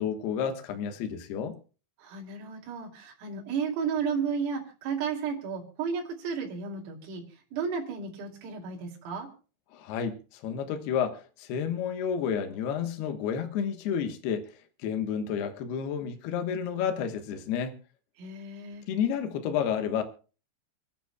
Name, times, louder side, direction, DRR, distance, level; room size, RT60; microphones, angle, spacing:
voice 1, 0.0-1.6 9.7-14.5 14.8-17.7 18.9-20.0, left 7 dB, 70° left, 2.8 m, -30 dB
voice 2, 2.0-7.2 7.5-9.3 18.2-18.8, right 6 dB, 90° right, 5.4 m, -33 dB
28.5 x 10.0 x 2.3 m
omnidirectional pair, 5.8 m